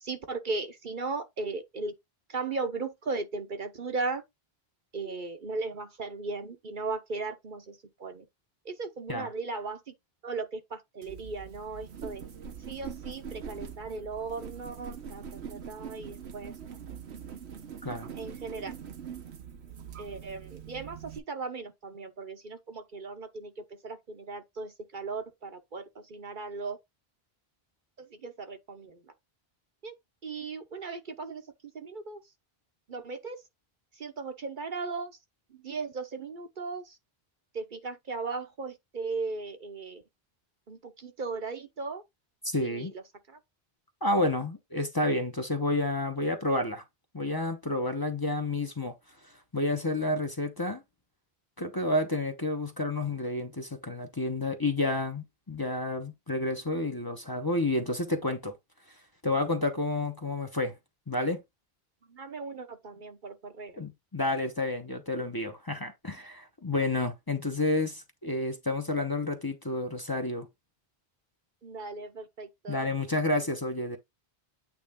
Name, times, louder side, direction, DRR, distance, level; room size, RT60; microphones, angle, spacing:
voice 1, 0.0-1.9 2.3-4.2 4.9-7.7 8.0-8.2 8.7-9.8 10.2-12.2 12.7-15.2 15.5-16.8 18.2-18.7 20.0-23.5 23.8-25.8 26.1-26.8 28.0-29.0 29.8-29.9 30.2-31.4 31.7-32.2 32.9-33.4 34.0-35.1 35.6-36.9 37.5-40.0 40.7-42.0 42.6-42.9 43.3-43.4 62.1-63.8 71.6-72.9, right 4 dB, 55° right, 1.0 m, -37 dB
sound 1, 11.0-21.2, right 7 dB, 90° right, 1.2 m, -43 dB
voice 2, 42.4-42.9 44.0-46.8 47.1-48.9 49.5-50.8 51.6-58.6 59.2-60.7 61.1-61.4 63.8-70.5 72.7-74.0, left 2 dB, 20° left, 1.0 m, -30 dB
8.7 x 3.3 x 3.6 m
omnidirectional pair, 1.1 m